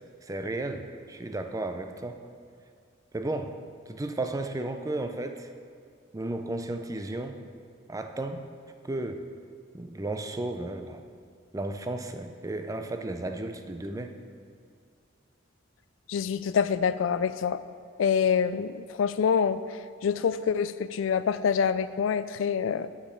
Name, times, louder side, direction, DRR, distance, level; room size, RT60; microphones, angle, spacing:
voice 1, 0.3-2.2 3.1-3.5 3.9-5.5 6.1-7.4 7.9-8.5 8.8-9.2 9.7-11.0 11.5-14.1, right 2 dB, 15° right, 6 dB, 0.4 m, -33 dB
voice 2, 16.1-17.6 18.0-19.6 20.0-22.9, left 7 dB, 75° left, 14 dB, 0.3 m, -26 dB
7.2 x 5.0 x 6.9 m, 2.3 s
head